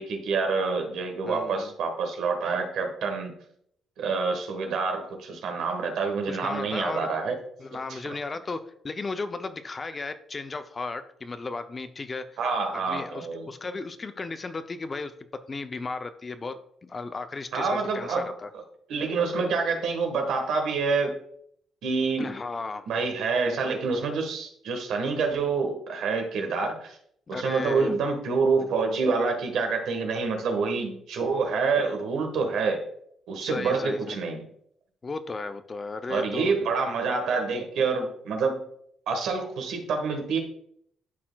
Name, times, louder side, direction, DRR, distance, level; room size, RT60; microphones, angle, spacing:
voice 1, 0.0-3.3 4.0-7.4 7.9-8.2 12.4-13.5 17.5-18.3 18.9-21.2 21.8-22.3 22.9-27.0 27.3-32.8 33.3-34.4 36.1-38.6 39.1-40.4, right 4 dB, 80° right, 4 dB, 1.3 m, -27 dB
voice 2, 1.3-1.7 6.3-7.1 7.6-12.4 12.7-15.1 15.5-16.6 16.9-18.5 22.2-22.9 27.3-28.0 33.4-34.2 35.0-36.5, left 3 dB, 30° left, 10 dB, 0.5 m, -35 dB
11.5 x 4.2 x 2.3 m, 0.68 s
cardioid pair, 90°, 0 cm